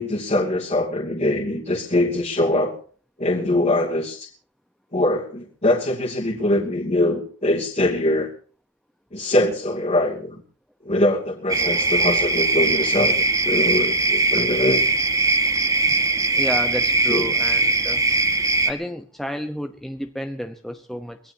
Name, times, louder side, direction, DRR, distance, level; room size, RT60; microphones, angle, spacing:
voice 1, 0.0-2.8 3.2-4.3 4.9-8.3 9.1-10.4 10.8-13.1 13.4-14.8 17.1-17.3, left 1 dB, 35° left, -2 dB, 2.7 m, -22 dB
sound 1, 11.5-18.7, right 3 dB, 15° right, 1.7 m, -20 dB
voice 2, 16.3-18.0 18.7-21.3, equal, ahead, 5 dB, 0.9 m, -31 dB
24.0 x 18.0 x 2.8 m, 0.43 s
head